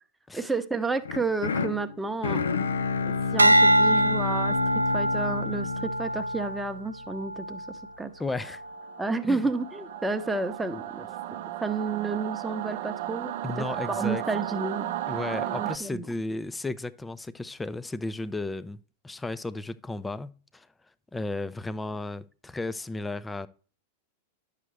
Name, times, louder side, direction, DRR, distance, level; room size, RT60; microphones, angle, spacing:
voice 1, 0.3-2.4 3.3-4.6 4.9-8.1 9.0-11.1 11.6-14.9 15.5-16.1, right 3 dB, 10° right, 0.9 m, -31 dB
sound 1, 1.0-7.2, left 5 dB, 80° left, 0.5 m, -30 dB
sound 2, 3.4-7.8 8.4-8.8, right 1 dB, 90° right, 0.3 m, -24 dB
voice 2, 8.2-8.6 9.2-9.4 13.4-14.2 15.1-18.8 19.0-20.7 21.1-23.5, left 2 dB, 10° left, 0.5 m, -34 dB
Singing / Musical instrument, 8.6-15.8, right 13 dB, 55° right, 0.7 m, -35 dB
10.5 x 6.6 x 3.3 m
figure-of-eight pair, 95°, 0 cm